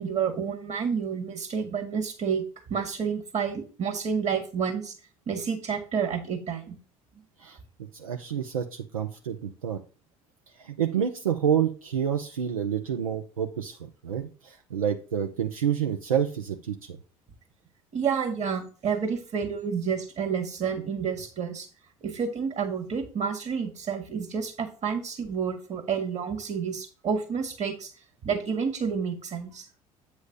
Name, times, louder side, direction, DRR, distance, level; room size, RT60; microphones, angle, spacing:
voice 1, 0.0-4.9 5.3-6.8 17.9-21.7 22.0-27.9 28.2-29.7, right 6 dB, 40° right, 5 dB, 1.7 m, -29 dB
voice 2, 7.9-9.8 10.6-17.0, right 8 dB, 85° right, 4 dB, 0.6 m, -28 dB
8.3 x 3.2 x 6.5 m, 0.37 s
figure-of-eight pair, 55°, 17 cm